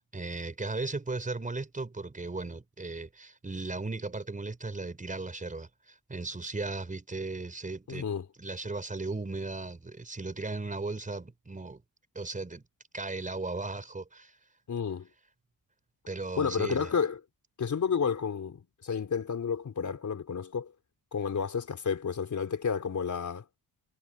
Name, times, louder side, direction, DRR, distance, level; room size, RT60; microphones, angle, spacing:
voice 1, 0.0-8.1 8.4-11.8 12.1-12.6 12.9-14.4 16.1-16.9, right 3 dB, 20° right, 5.0 m, -36 dB
voice 2, 7.9-8.2 14.7-15.1 16.4-17.2 17.6-20.7 21.1-23.4, left 6 dB, 45° left, 4.1 m, -31 dB
wide cardioid pair, 155°, 42 cm